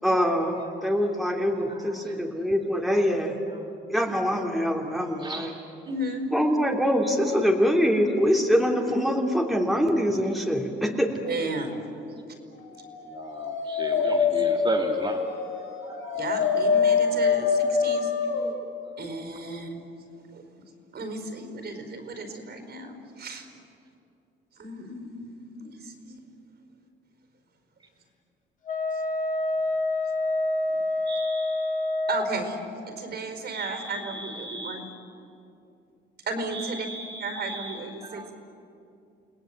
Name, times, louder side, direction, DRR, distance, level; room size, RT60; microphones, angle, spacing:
voice 1, 0.0-3.4 3.9-5.5 6.3-11.1, equal, ahead, 1 dB, 2.9 m, -24 dB
voice 2, 5.2-5.6 13.1-15.2 15.8-16.2 31.1-31.9 33.5-34.8 36.5-38.3, right 2 dB, 25° right, 0 dB, 2.1 m, -36 dB
voice 3, 5.8-6.3 11.2-11.8 14.3-14.4 16.1-18.1 19.0-19.8 20.3-20.6 20.9-23.5 24.6-26.2 32.1-32.6 32.9-34.8 36.3-36.9 37.2-38.2, right 2 dB, 55° right, 6 dB, 5.0 m, -34 dB
Dog, 12.9-18.5, left 5 dB, 80° left, 5.1 m, -25 dB
Wind instrument woodwind instrument, 28.7-32.3, left 2 dB, 40° left, 3.3 m, -27 dB
29.5 x 18.5 x 9.2 m, 2.6 s
cardioid pair, 90°, 20 cm